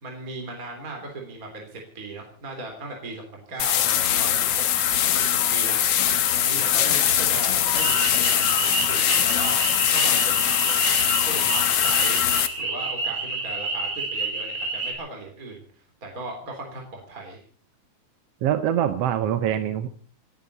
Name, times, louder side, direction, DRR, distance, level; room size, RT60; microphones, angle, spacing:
voice 1, 0.0-4.6 5.2-9.6 9.9-10.9 11.3-12.2 12.6-15.6 16.0-17.4, right 2 dB, 30° right, 1 dB, 3.7 m, -37 dB
sound 1, 3.6-12.5, left 10 dB, 60° left, 1.9 m, -22 dB
sound 2, 7.8-14.9, right 3 dB, 85° right, 4.6 m, -29 dB
voice 2, 18.4-20.0, right 10 dB, 65° right, 9 dB, 1.7 m, -24 dB
29.0 x 10.5 x 4.2 m, 0.44 s
omnidirectional pair, 3.4 m